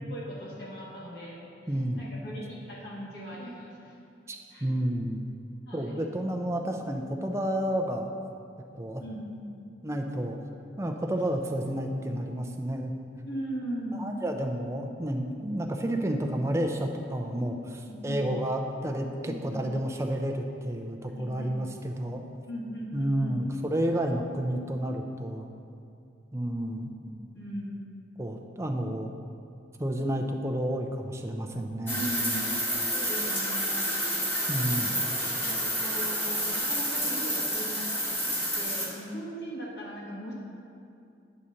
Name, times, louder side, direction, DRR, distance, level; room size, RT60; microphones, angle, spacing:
voice 1, 0.1-3.9 4.5-4.7 5.7-6.1 9.0-9.5 13.3-14.2 17.9-18.2 19.2-19.6 21.1-21.5 22.5-23.4 27.3-27.8 31.9-32.5 32.8-33.9 34.6-34.9 35.4-38.3 38.6-40.3, equal, 60° left, -5 dB, 1.6 m, -39 dB
voice 2, 1.7-2.0 4.3-5.2 5.7-8.1 8.8-9.0 9.8-10.4 10.8-12.9 13.9-22.2 22.9-25.5 26.3-26.9 28.2-29.1 29.8-32.0 34.5-34.9, right 1 dB, 15° right, 3 dB, 0.5 m, -30 dB
sound 1, 31.9-38.9, equal, 10° left, 1.2 m, -29 dB
8.6 x 4.1 x 6.4 m, 2.5 s
head